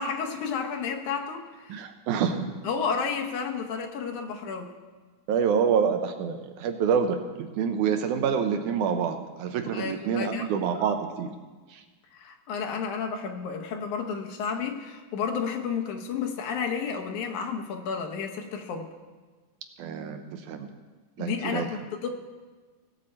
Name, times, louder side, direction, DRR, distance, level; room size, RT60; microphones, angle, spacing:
voice 1, 0.0-1.9 2.6-4.7 9.7-10.9 12.1-18.9 21.2-22.1, left 6 dB, 70° left, 3 dB, 2.2 m, -32 dB
voice 2, 1.7-2.5 5.3-11.3 11.7-11.8 19.8-20.7 21.2-21.7, right 7 dB, 75° right, 6 dB, 2.0 m, -27 dB
18.5 x 7.6 x 4.3 m, 1.3 s
omnidirectional pair, 3.8 m